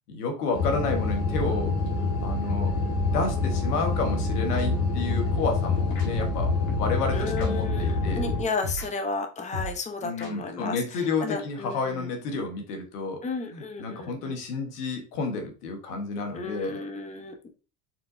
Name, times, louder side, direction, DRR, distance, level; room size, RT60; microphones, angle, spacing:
voice 1, 0.1-1.7 2.2-2.7 3.1-8.3 10.0-13.2 13.5-16.8, left 4 dB, 90° left, 3 dB, 1.3 m, -31 dB
sound 1, 0.5-8.4, left 3 dB, 55° left, 1.7 m, -26 dB
sound 2, 4.6-4.7 6.0-6.1 6.7-6.9 7.4-7.5 8.6-8.9 9.5-9.8 10.2-10.3, left 1 dB, 75° left, 1.7 m, -34 dB
voice 2, 7.1-12.1 13.2-14.3 16.3-17.3, left 4 dB, 15° left, 5 dB, 0.8 m, -33 dB
4.4 x 3.8 x 2.6 m, 0.34 s
hypercardioid pair, 90°, 44 cm